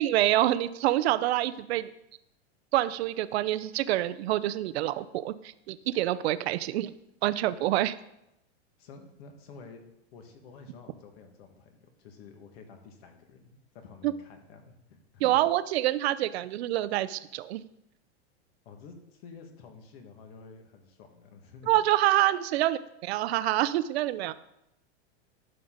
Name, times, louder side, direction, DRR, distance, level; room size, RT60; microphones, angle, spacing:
voice 1, 0.0-1.9 2.7-6.9 7.2-7.9 14.0-14.1 15.2-17.6 21.7-24.3, right 14 dB, 70° right, 15 dB, 0.7 m, -26 dB
voice 2, 8.8-15.3 18.6-21.7, left 5 dB, 65° left, 4 dB, 2.0 m, -50 dB
12.5 x 6.7 x 4.0 m, 0.83 s
supercardioid pair, 145°, 33 cm